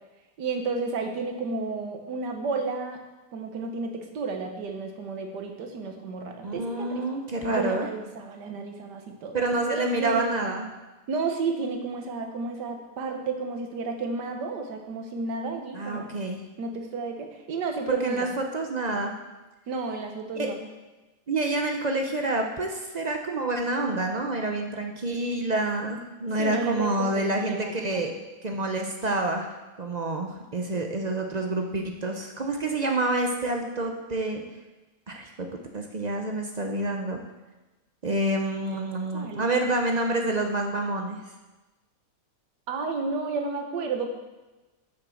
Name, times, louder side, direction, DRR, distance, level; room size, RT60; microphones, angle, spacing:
voice 1, 0.4-3.0 3.3-7.0 7.4-10.6 11.1-16.1 16.6-18.3 19.7-20.6 26.4-28.1 39.1-39.4 42.7-44.1, right 4 dB, 80° right, 4 dB, 1.7 m, -32 dB
voice 2, 6.4-7.9 9.3-10.7 15.7-16.4 17.9-19.1 20.3-20.5 21.3-28.1 28.4-29.5 29.8-34.4 35.1-35.5 35.7-37.2 38.0-41.2, right 2 dB, 50° right, 3 dB, 0.4 m, -28 dB
8.0 x 6.2 x 6.4 m, 1.1 s
omnidirectional pair, 1.8 m